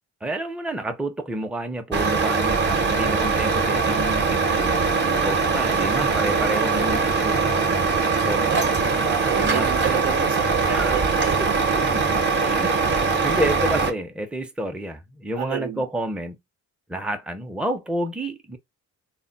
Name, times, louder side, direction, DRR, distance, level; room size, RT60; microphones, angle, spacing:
voice 1, 0.2-7.5 8.2-8.6 9.4-9.7 10.7-11.1 11.4-16.4 16.9-18.6, right 1 dB, 5° right, 0.5 m, -30 dB
Truck, 1.9-13.9, right 4 dB, 35° right, 0.7 m, -22 dB
voice 2, 8.3-11.4 15.4-15.9, right 11 dB, 75° right, 0.6 m, -30 dB
2.1 x 2.0 x 3.7 m
cardioid pair, 90°, 30 cm